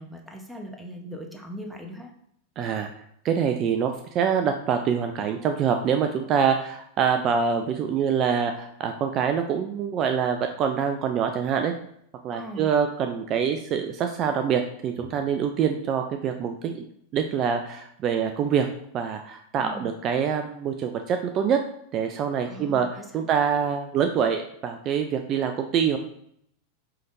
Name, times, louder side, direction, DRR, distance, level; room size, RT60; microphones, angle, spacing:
voice 1, 0.0-2.1 12.3-12.7 19.6-19.9 22.5-23.3, equal, 5° right, 2 dB, 0.9 m, -40 dB
voice 2, 2.6-2.9 3.2-11.7 12.2-16.8 17.1-18.7 18.9-21.6 21.9-26.0, right 7 dB, 40° right, 6 dB, 0.4 m, -25 dB
5.6 x 3.4 x 2.6 m, 0.69 s
hypercardioid pair, 100°, 0 cm